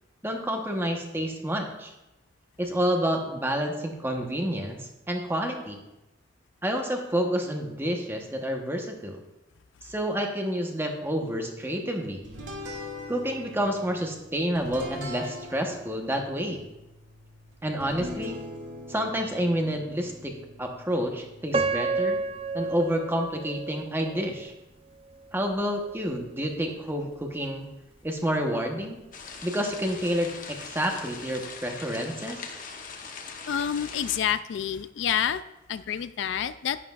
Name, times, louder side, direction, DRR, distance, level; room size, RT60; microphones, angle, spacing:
voice 1, 0.2-1.9 2.6-5.8 6.6-9.2 9.8-12.2 13.1-16.7 17.6-18.4 18.9-22.2 22.5-24.5 25.3-27.7 28.0-29.0 29.4-32.4, equal, 10° right, 3 dB, 1.0 m, -29 dB
sound 1, 12.2-22.9, left 1 dB, 80° right, 2.1 m, -42 dB
Piano, 21.5-24.5 25.1-25.2 25.9-26.1, right 3 dB, 30° right, 0.5 m, -30 dB
sound 2, 29.1-34.2, left 5 dB, 45° left, 1.0 m, -41 dB
voice 2, 33.5-35.4 35.7-36.8, left 9 dB, 65° left, 13 dB, 0.3 m, -28 dB
11.0 x 9.9 x 2.4 m, 0.96 s
head